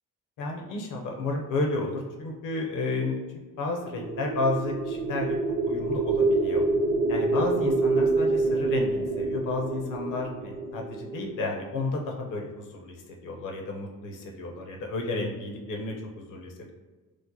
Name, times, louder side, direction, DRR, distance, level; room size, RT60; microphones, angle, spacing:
voice 1, 0.4-3.2 3.6-5.4 5.6-6.7 7.1-16.7, left 2 dB, 70° left, 1 dB, 0.7 m, -32 dB
sound 1, 3.8-11.9, right 3 dB, 50° right, 0.6 m, -27 dB
3.1 x 2.1 x 3.7 m, 1.3 s
supercardioid pair, 70°, 34 cm